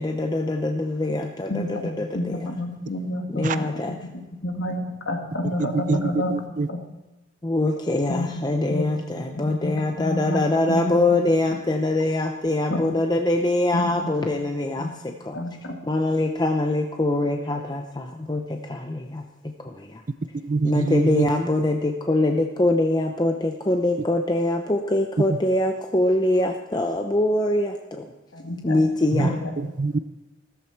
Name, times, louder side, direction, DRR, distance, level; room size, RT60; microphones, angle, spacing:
voice 1, 0.0-2.4 3.3-4.0 7.4-15.4 15.8-20.0 20.6-28.1 28.6-29.4, left 2 dB, 20° left, 3 dB, 0.7 m, -24 dB
voice 2, 1.5-3.7 4.4-6.4 6.7-6.8 8.1-8.4 8.7-11.2 12.7-12.8 13.7-14.3 14.8-14.9 15.3-15.8 28.3-28.9 29.2-29.5, left 1 dB, 85° left, 3 dB, 2.0 m, -30 dB
voice 3, 5.9-6.7 20.4-21.3 29.6-30.0, right 3 dB, 40° right, 12 dB, 0.4 m, -24 dB
15.5 x 14.0 x 4.5 m, 1.1 s
head